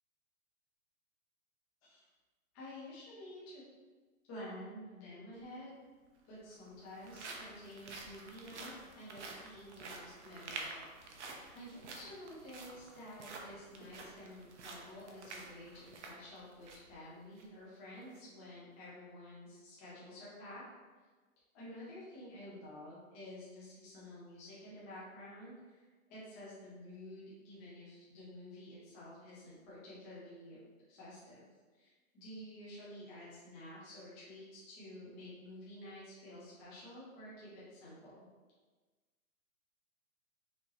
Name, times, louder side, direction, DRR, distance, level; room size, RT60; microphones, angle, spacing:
voice 1, 2.5-3.6 4.3-5.8 6.3-20.6 20.9-21.0 21.5-30.6 30.9-38.2, left 1 dB, 10° left, -9 dB, 0.7 m, -51 dB
sound 1, 5.3-5.4 6.4-16.9 17.3-17.4 18.0-18.2, right 3 dB, 55° right, 0.8 m, -49 dB
5.9 x 2.9 x 3.0 m, 1.3 s
hypercardioid pair, 175°, 43 cm